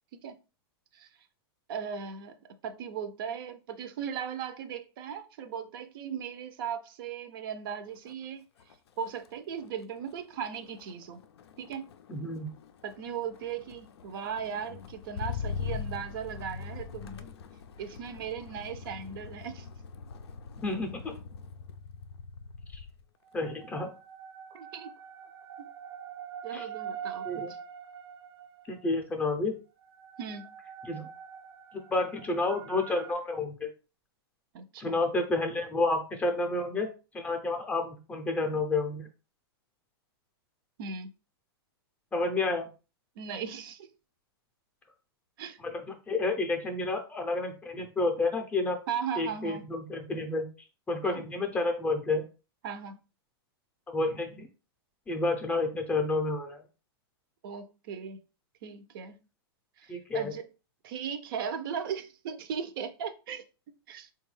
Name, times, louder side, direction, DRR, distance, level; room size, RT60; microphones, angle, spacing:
voice 1, 1.7-2.4 2.6-8.4 9.0-11.2 11.6-11.9 12.8-17.3 17.8-19.7 24.5-24.9 25.6-25.7 26.4-27.6 30.2-30.5 34.5-35.0 40.8-41.1 43.2-43.9 45.4-45.6 48.9-49.7 51.0-51.2 52.6-52.9 57.4-58.2 58.6-59.2 59.8-60.5 60.8-63.4 63.9-64.1, right 7 dB, 60° right, 0.5 m, -37 dB
Motor vehicle (road), 7.9-8.3 8.6-23.0 23.4-23.9, left 6 dB, 80° left, 0.4 m, -42 dB
voice 2, 12.1-12.5 20.6-21.1 22.7-22.8 23.3-23.9 26.5-26.7 27.3-27.5 28.7-29.6 30.8-31.0 31.7-33.7 34.8-36.9 37.1-39.0 42.1-42.7 45.6-45.7 46.1-48.8 49.2-50.5 50.9-52.2 53.9-54.5 55.1-56.6 59.9-60.3, left 2 dB, 10° left, 0.5 m, -30 dB
sound 1, 23.3-28.9 29.8-33.1, right 8 dB, 80° right, 0.8 m, -44 dB
3.5 x 2.3 x 3.1 m
hypercardioid pair, 140°, 13 cm